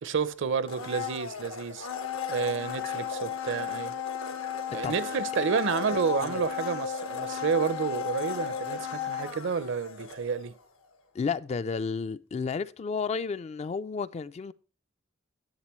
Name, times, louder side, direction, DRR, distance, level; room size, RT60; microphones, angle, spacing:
voice 1, 0.0-1.9 2.3-3.9 4.7-10.5, right 5 dB, 65° right, 0.6 m, -30 dB
Domestic sounds home sounds, 0.6-10.6 10.9-11.0, left 7 dB, 85° left, 1.2 m, -35 dB
voice 2, 11.1-14.5, left 5 dB, 30° left, 0.3 m, -32 dB
10.5 x 7.4 x 3.0 m
head